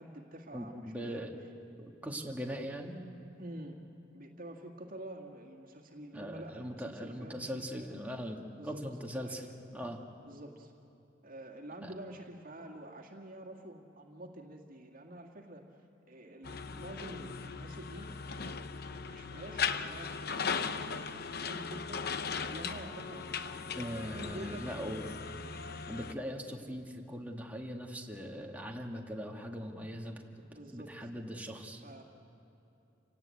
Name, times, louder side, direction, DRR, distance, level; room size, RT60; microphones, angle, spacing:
voice 1, 0.0-1.3 3.4-3.8 4.1-7.9 8.5-8.9 9.2-9.5 10.2-10.7 11.2-18.6 18.9-20.2 20.7-22.1 22.4-23.5 24.0-25.3 30.5-31.1 31.8-32.0, right 1 dB, 45° right, 0 dB, 2.1 m, -48 dB
voice 2, 0.5-1.3 1.8-3.0 6.1-9.5 9.7-10.0 11.8-11.9 23.8-25.1 25.9-31.8, equal, 10° right, 1 dB, 2.0 m, -40 dB
sound 1, 16.4-26.1, left 5 dB, 55° left, 0.8 m, -38 dB
28.5 x 18.5 x 8.5 m, 2.9 s
head